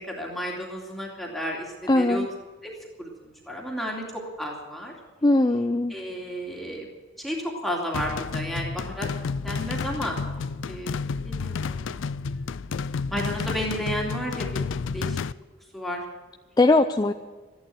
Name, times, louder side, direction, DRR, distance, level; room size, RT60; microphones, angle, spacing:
voice 1, 0.0-2.3 2.6-2.7 3.0-4.9 5.9-6.9 7.2-9.1 9.4-10.1 10.7-12.7 13.1-15.2 15.7-16.0, equal, ahead, -2 dB, 2.6 m, -33 dB
voice 2, 1.9-2.3 5.2-5.9 16.6-17.1, left 2 dB, 20° left, 6 dB, 0.5 m, -20 dB
sound 1, 7.9-15.3, left 5 dB, 80° left, 0.4 m, -31 dB
14.0 x 11.0 x 7.7 m, 1.3 s
head